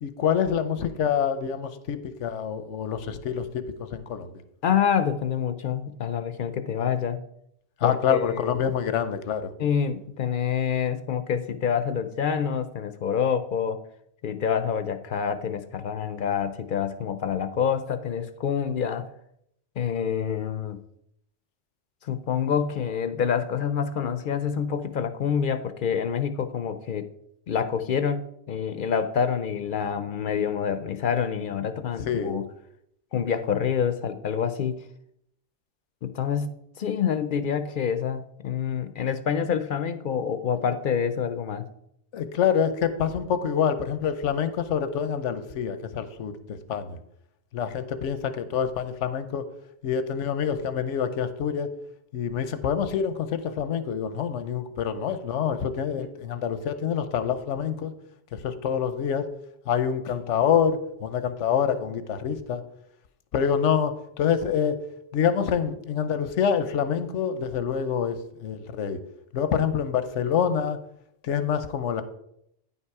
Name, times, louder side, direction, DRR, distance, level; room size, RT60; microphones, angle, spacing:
voice 1, 0.0-4.3 7.8-9.5 32.0-32.4 42.1-47.0 47.5-49.4 49.8-51.7 52.1-57.9 58.3-59.3 59.7-62.6 63.3-64.8 65.1-69.0 69.3-70.8 71.2-72.0, left 8 dB, 90° left, 11 dB, 1.1 m, -26 dB
voice 2, 4.6-7.2 7.8-8.7 9.6-13.8 14.2-19.1 19.8-20.8 22.0-27.1 27.5-32.4 33.1-34.8 36.0-41.7 56.0-56.1, left 7 dB, 55° left, 11 dB, 0.6 m, -27 dB
9.5 x 5.8 x 4.7 m, 0.76 s
omnidirectional pair, 1.2 m